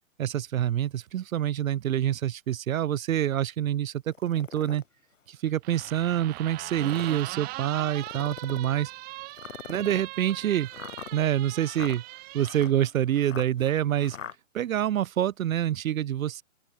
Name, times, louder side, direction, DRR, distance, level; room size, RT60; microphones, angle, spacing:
voice 1, 0.2-4.8 5.3-8.9 9.7-10.7 11.1-12.0 12.3-14.2 14.5-16.4, right 11 dB, 75° right, 0.5 m, -26 dB
sound 1, 4.1-4.8 5.5-5.6 6.6-7.3 8.0-8.7 9.4-14.4, left 8 dB, 65° left, 4.9 m, -43 dB
sound 2, 5.6-12.7, right 22 dB, 20° right, 4.2 m, -41 dB
open air
hypercardioid pair, 150°, 42 cm